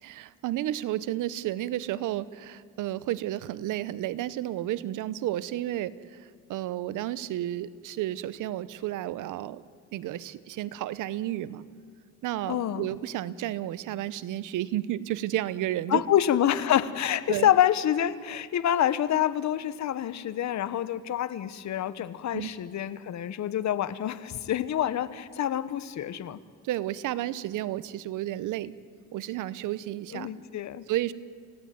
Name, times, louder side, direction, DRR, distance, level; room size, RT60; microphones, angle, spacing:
voice 1, 0.0-9.6 9.9-11.6 12.2-16.0 17.3-17.5 22.3-22.5 26.6-28.7 29.1-30.3 30.9-31.1, right 14 dB, 85° right, 17 dB, 1.0 m, -32 dB
voice 2, 12.5-12.9 15.9-26.4 30.1-30.9, left 11 dB, 65° left, 15 dB, 1.2 m, -27 dB
29.0 x 17.0 x 9.3 m, 2.1 s
cardioid pair, 90°, 30 cm